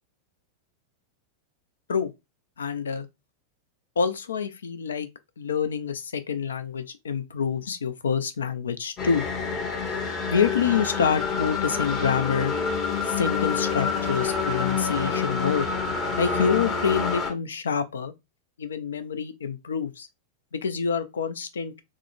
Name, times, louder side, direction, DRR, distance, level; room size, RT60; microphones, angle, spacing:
voice 1, 2.6-3.1 4.0-5.1 5.4-9.2 10.3-12.6 13.1-15.6 16.2-18.1 18.6-20.1 20.5-21.8, left 6 dB, 70° left, 0.4 m, -27 dB
sound 1, 9.0-17.3, left 5 dB, 30° left, 0.9 m, -27 dB
3.6 x 2.0 x 2.5 m
figure-of-eight pair, 90°, 0 cm